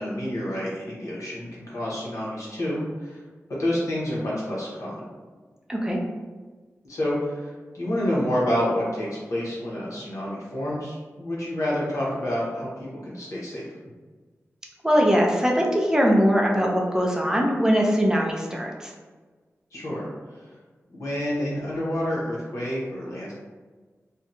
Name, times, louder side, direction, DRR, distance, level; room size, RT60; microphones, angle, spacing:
voice 1, 0.0-3.2 3.6-5.1 6.8-13.7 19.7-20.5 20.9-23.3, left 1 dB, 85° left, -6 dB, 0.9 m, -29 dB
voice 2, 14.8-18.9, equal, 10° right, -1 dB, 0.4 m, -21 dB
2.7 x 2.2 x 2.5 m, 1.4 s
wide cardioid pair, 95°, 5 cm